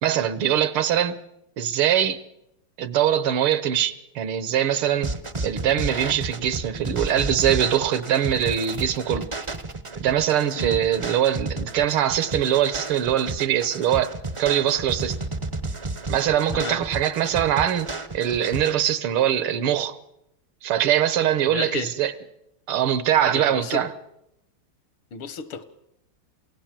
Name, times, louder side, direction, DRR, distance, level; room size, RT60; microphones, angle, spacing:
voice 1, 0.0-1.2 1.6-2.2 2.8-5.1 5.4-9.3 10.0-15.2 16.1-17.9 18.1-19.9 20.6-22.1 22.7-23.9, right 10 dB, 80° right, 2.0 m, -22 dB
sound 1, 5.0-18.7, right 2 dB, 35° right, 0.4 m, -32 dB
voice 2, 21.4-21.9 23.3-23.9 25.1-25.7, left 5 dB, 75° left, 2.1 m, -32 dB
28.0 x 16.5 x 7.5 m
omnidirectional pair, 2.4 m